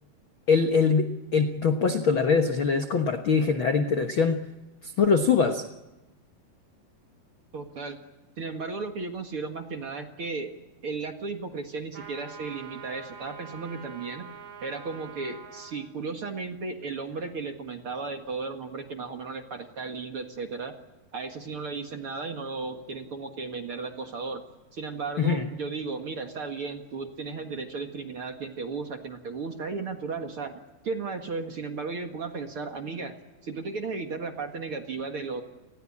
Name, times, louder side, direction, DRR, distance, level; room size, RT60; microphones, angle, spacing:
voice 1, 0.5-4.4 5.0-5.6 25.2-25.5, left 5 dB, 80° left, 6 dB, 1.1 m, -23 dB
voice 2, 7.5-8.0 8.4-10.5 10.8-14.3 14.6-20.8 21.1-24.4 24.7-33.2 33.4-35.4, right 4 dB, 45° right, 5 dB, 1.9 m, -35 dB
sound 1, 11.9-15.8, right 6 dB, 75° right, 5.7 m, -44 dB
29.5 x 20.5 x 8.6 m, 1.1 s
omnidirectional pair, 4.4 m